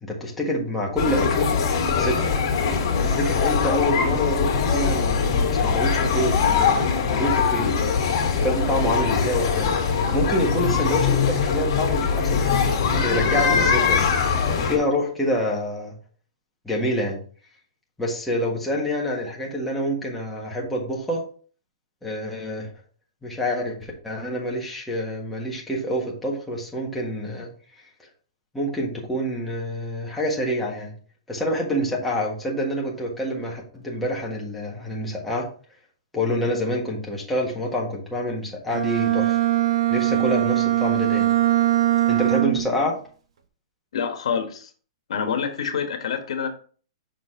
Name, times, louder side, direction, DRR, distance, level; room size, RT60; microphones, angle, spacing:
voice 1, 0.0-1.5 2.0-2.3 3.0-6.8 7.1-7.8 8.3-9.7 10.1-12.6 12.9-14.1 14.6-16.0 16.6-17.2 18.0-21.2 22.0-22.7 23.2-27.5 28.5-30.9 31.3-35.5 36.1-39.3 39.9-41.3 42.1-42.9, equal, 5° left, -4 dB, 1.5 m, -27 dB
sound 1, 1.0-14.8, left 6 dB, 50° left, 2.0 m, -22 dB
Bowed string instrument, 38.7-42.8, right 14 dB, 75° right, 0.8 m, -21 dB
voice 2, 43.9-44.7 45.1-46.5, left 7 dB, 75° left, 6 dB, 1.4 m, -27 dB
6.2 x 4.1 x 3.8 m, 0.42 s
hypercardioid pair, 160°, 3 cm